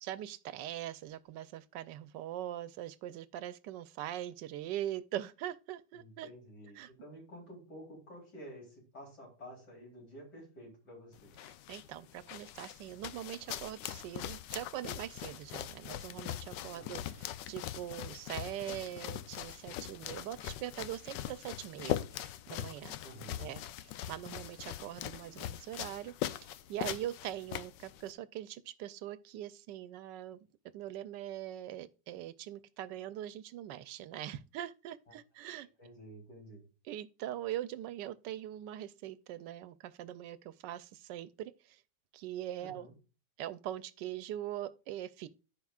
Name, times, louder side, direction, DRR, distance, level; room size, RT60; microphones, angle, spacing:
voice 1, 0.0-6.3 6.8-6.9 11.4-22.9 23.4-26.1 26.4-30.5 30.7-35.7 36.8-41.8 42.1-42.9 43.4-45.3, right 12 dB, 80° right, 1.3 m, -42 dB
voice 2, 5.9-11.4 16.7-17.2 23.0-23.5 35.1-35.2 35.8-36.6 42.6-42.9, equal, 65° left, 3.9 m, -51 dB
sound 1, 11.1-28.1, left 12 dB, 80° left, 1.2 m, -41 dB
14.0 x 4.8 x 2.4 m
omnidirectional pair, 1.9 m